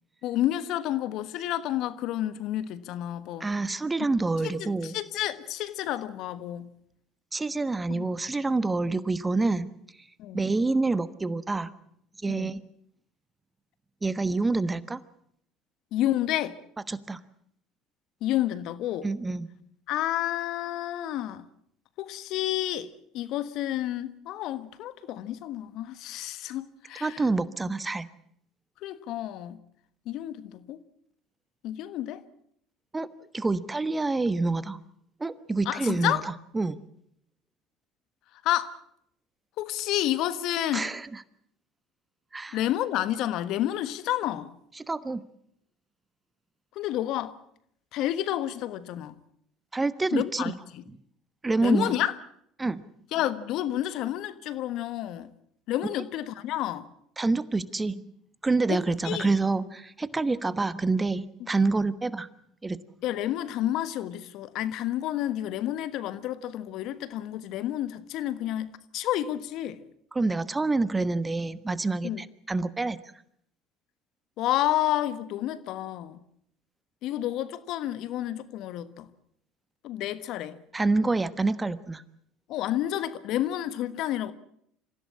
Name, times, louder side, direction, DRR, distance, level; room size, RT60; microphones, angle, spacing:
voice 1, 0.2-3.5 4.4-6.7 7.9-8.1 10.2-10.4 12.3-12.6 15.9-16.6 18.2-19.1 19.9-21.4 22.0-22.9 23.1-27.2 28.8-29.6 30.0-30.8 31.6-32.2 35.6-36.2 38.4-38.8 39.6-40.9 42.5-44.5 46.7-47.3 47.9-49.2 50.1-50.8 51.6-52.2 53.1-55.3 55.7-56.9 58.7-59.3 63.0-69.8 72.0-72.2 74.4-76.2 77.0-79.1 79.8-80.6 82.5-84.3, left 13 dB, 60° left, 1.3 m, -30 dB
voice 2, 3.4-5.0 7.3-9.7 10.3-11.7 12.2-12.6 14.0-15.0 16.9-17.2 19.0-19.5 27.0-28.1 32.9-33.1 33.3-34.8 35.2-36.2 36.5-36.8 40.7-41.2 42.3-42.6 44.8-45.2 49.7-50.5 51.4-52.0 52.6-52.8 57.2-58.0 58.4-62.3 62.6-62.8 70.1-73.0 80.7-82.0, right 3 dB, 20° right, 1.2 m, -27 dB
26.0 x 16.0 x 8.5 m
hypercardioid pair, 70°, 0 cm